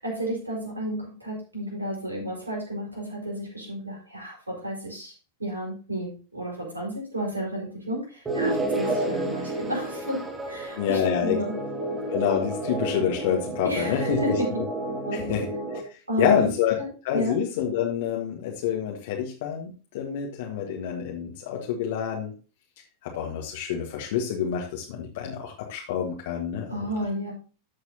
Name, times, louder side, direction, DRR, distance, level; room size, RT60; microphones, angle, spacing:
voice 1, 0.0-5.1 5.4-11.6 13.6-14.5 15.0-15.4 16.1-16.5 16.8-17.4 26.7-27.3, equal, 80° right, -1 dB, 4.8 m, -32 dB
sound 1, 8.3-15.8, right 2 dB, 15° right, 1.9 m, -30 dB
voice 2, 10.8-14.4 15.1-16.8 17.0-22.3 23.0-26.7, left 8 dB, 55° left, 0 dB, 1.5 m, -28 dB
13.5 x 6.5 x 2.9 m, 0.35 s
figure-of-eight pair, 90°, 0 cm